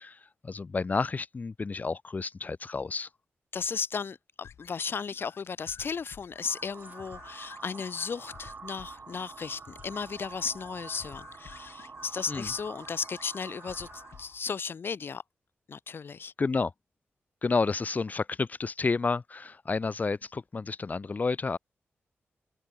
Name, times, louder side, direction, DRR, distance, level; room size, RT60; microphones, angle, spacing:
voice 1, 0.0-3.1 12.3-12.5 16.4-16.7 17.4-21.6, left 4 dB, 40° left, 1.0 m, -30 dB
voice 2, 3.5-15.2 15.7-16.3, left 6 dB, 60° left, 1.3 m, -35 dB
sound 1, 4.4-14.6, left 8 dB, 85° left, 1.7 m, -53 dB
sound 2, 6.3-14.4, right 4 dB, 40° right, 0.6 m, -47 dB
open air
wide cardioid pair, 90°, 4 cm